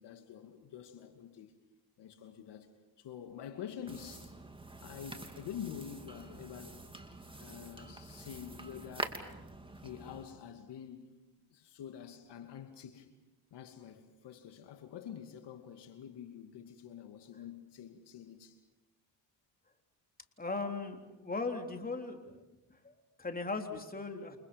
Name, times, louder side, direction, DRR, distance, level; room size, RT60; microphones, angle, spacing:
voice 1, 0.0-1.5 2.0-2.7 3.0-4.3 4.8-6.9 7.3-9.2 9.8-11.1 11.5-13.1 13.5-18.6, left 9 dB, 70° left, 2.6 m, -47 dB
sound 1, 3.9-10.2, right 2 dB, 10° right, 3.0 m, -46 dB
voice 2, 20.4-22.4 22.7-24.4, left 3 dB, 20° left, 3.6 m, -38 dB
30.0 x 28.0 x 5.3 m
cardioid pair, 85°, 43 cm